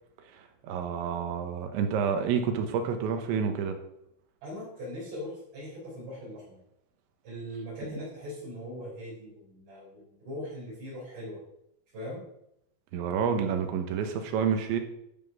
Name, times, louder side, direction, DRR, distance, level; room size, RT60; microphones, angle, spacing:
voice 1, 0.3-3.8 12.9-14.8, right 7 dB, 80° right, 6 dB, 3.4 m, -29 dB
voice 2, 4.4-6.6 7.2-11.4 11.9-12.2, equal, 55° right, -8 dB, 5.5 m, -40 dB
13.0 x 6.1 x 5.9 m, 0.78 s
omnidirectional pair, 5.5 m